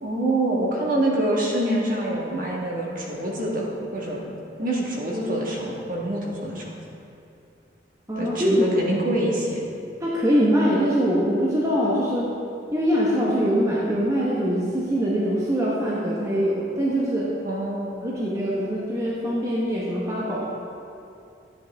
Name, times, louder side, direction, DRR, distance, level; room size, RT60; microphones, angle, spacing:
voice 1, 0.0-4.2 4.6-6.7 8.2-9.6 17.4-18.0, right 1 dB, 45° right, -3 dB, 1.6 m, -26 dB
voice 2, 8.1-8.9 10.0-12.3 12.7-17.3 18.0-20.5, equal, 15° right, -6 dB, 1.0 m, -23 dB
12.0 x 7.9 x 3.4 m, 2.6 s
head